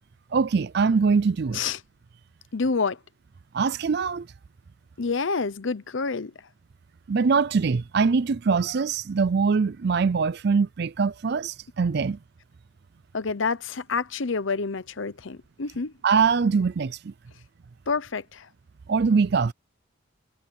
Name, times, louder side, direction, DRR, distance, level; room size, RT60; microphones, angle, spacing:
voice 1, 0.3-1.6 3.5-4.3 7.1-12.2 16.0-17.1 18.9-19.5, right 5 dB, 50° right, 0.4 m, -23 dB
voice 2, 2.5-3.0 5.0-6.3 13.1-15.9 17.9-18.5, left 4 dB, 65° left, 0.8 m, -28 dB
head